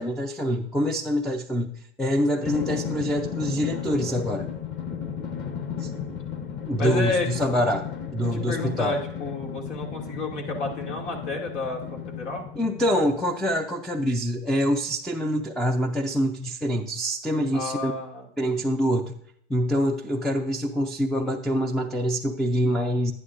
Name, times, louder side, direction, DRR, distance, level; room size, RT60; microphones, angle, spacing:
voice 1, 0.0-4.5 5.8-5.9 6.7-7.9 8.1-9.0 12.6-17.9 18.4-19.1 19.5-23.1, equal, ahead, 4 dB, 0.4 m, -25 dB
voice 2, 2.4-2.7 6.8-7.3 8.3-12.5 17.5-18.6, left 3 dB, 80° left, 0 dB, 2.5 m, -31 dB
Drum, 2.5-13.5, left 7 dB, 30° left, 1.1 m, -34 dB
10.5 x 9.9 x 2.5 m, 0.72 s
hypercardioid pair, 110°, 35 cm